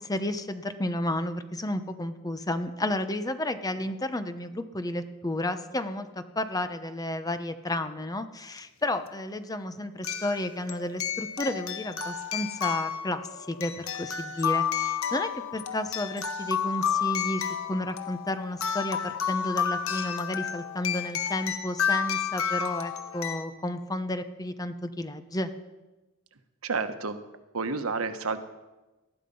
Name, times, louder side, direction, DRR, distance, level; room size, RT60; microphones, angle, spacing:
voice 1, 0.0-6.1 6.4-25.5, left 1 dB, 15° left, 10 dB, 0.9 m, -32 dB
sound 1, 8.6-8.7 10.0-23.4, left 8 dB, 75° left, 1.4 m, -31 dB
voice 2, 26.6-27.2 27.5-28.4, right 4 dB, 85° right, 9 dB, 1.2 m, -30 dB
19.5 x 13.0 x 5.5 m, 1.1 s
head